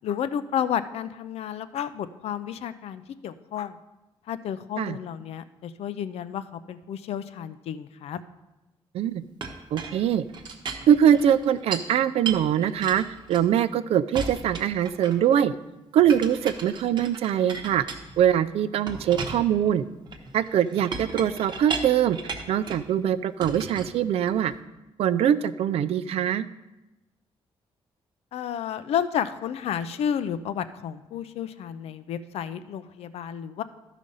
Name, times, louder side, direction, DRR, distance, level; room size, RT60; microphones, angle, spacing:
voice 1, 0.0-3.8 4.3-8.2 28.3-33.6, left 9 dB, 80° left, 12 dB, 0.5 m, -31 dB
Chink clink, 9.4-11.9 12.3-13.7 14.1-15.4 16.1-18.4 18.9-22.9 23.4-24.6, right 4 dB, 45° right, 0.9 m, -36 dB
voice 2, 9.7-10.2 10.9-15.5 15.9-17.8 18.2-19.8 20.3-22.2 22.5-24.5 25.0-26.4, right 9 dB, 75° right, 13 dB, 0.4 m, -22 dB
13.0 x 5.0 x 5.4 m, 1.0 s
wide cardioid pair, 175°, 10 cm